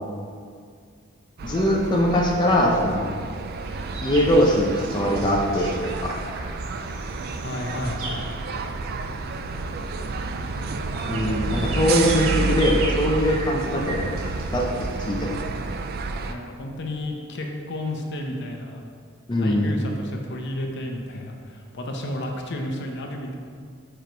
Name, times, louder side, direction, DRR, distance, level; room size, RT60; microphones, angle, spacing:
voice 1, 1.4-3.1 4.0-6.1 11.1-14.1 14.5-15.4 19.3-19.8, equal, 20° left, -2 dB, 0.6 m, -22 dB
sound 1, 1.4-16.3, right 4 dB, 50° right, 0.4 m, -30 dB
sound 2, 3.6-15.4, right 1 dB, 85° right, 1.1 m, -37 dB
voice 2, 7.4-8.3 16.3-18.8 19.3-23.4, left 1 dB, 55° left, 2 dB, 0.7 m, -32 dB
4.8 x 4.6 x 5.1 m, 2.2 s
head